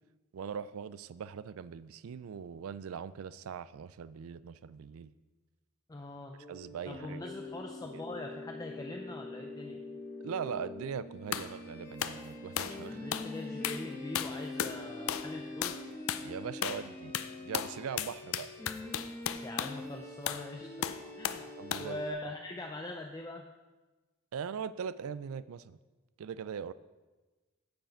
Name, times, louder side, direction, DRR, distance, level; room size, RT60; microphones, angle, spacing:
voice 1, 0.3-5.1 6.5-7.2 10.2-13.1 16.2-17.1 17.4-18.5 21.6-22.0 24.3-25.8 26.2-26.7, right 7 dB, 80° right, 17 dB, 0.4 m, -40 dB
voice 2, 5.9-6.4 6.9-9.8 12.9-15.9 19.4-21.5 21.8-23.5, left 2 dB, 20° left, 2 dB, 0.4 m, -43 dB
sound 1, 6.4-22.1, left 2 dB, 45° left, 2.6 m, -44 dB
sound 2, 11.3-11.5 12.0-12.2 12.6-12.8 13.1-13.3 13.6-13.9 14.1-14.8 15.1-15.3 15.6-15.8 16.1-16.3 16.6-16.9 17.1-19.8 20.3-20.5 20.8-21.4 21.7-21.9, left 9 dB, 70° left, 0.5 m, -35 dB
9.2 x 7.9 x 4.4 m, 1.2 s
head